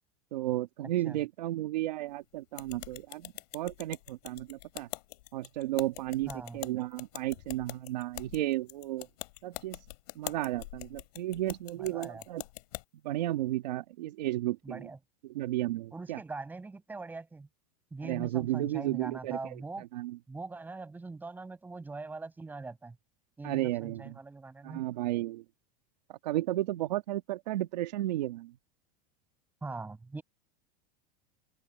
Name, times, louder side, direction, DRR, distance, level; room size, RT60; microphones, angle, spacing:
voice 1, 0.3-4.9 5.3-9.1 9.4-9.8 10.2-12.4 13.0-14.9 15.2-16.2 18.0-20.2 23.4-24.2 24.6-25.4 26.1-28.5, right 15 dB, 90° right, 1.9 m, -33 dB
sound 1, 2.6-12.8, left 20 dB, 65° left, 6.6 m, -44 dB
voice 2, 6.3-6.7 11.8-12.2 14.6-15.0 15.9-17.5 17.9-19.9 20.3-23.0 23.4-24.9 29.6-30.2, right 3 dB, 10° right, 6.9 m, -42 dB
open air
supercardioid pair, 160°, 21 cm